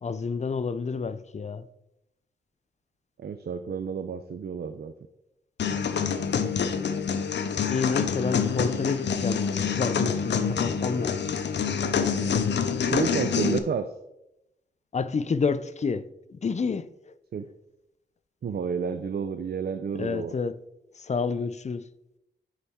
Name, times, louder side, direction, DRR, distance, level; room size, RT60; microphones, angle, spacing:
voice 1, 0.0-1.7 7.7-11.2 14.9-17.1 19.9-20.6 21.0-21.9, left 5 dB, 40° left, 0.5 m, -29 dB
voice 2, 3.2-4.9 12.9-13.9 17.3-17.4 18.4-20.3, right 6 dB, 65° right, 0.5 m, -30 dB
sound 1, 5.6-13.6, left 6 dB, 90° left, 0.5 m, -26 dB
9.8 x 4.1 x 3.6 m
cardioid pair, 50°, 18 cm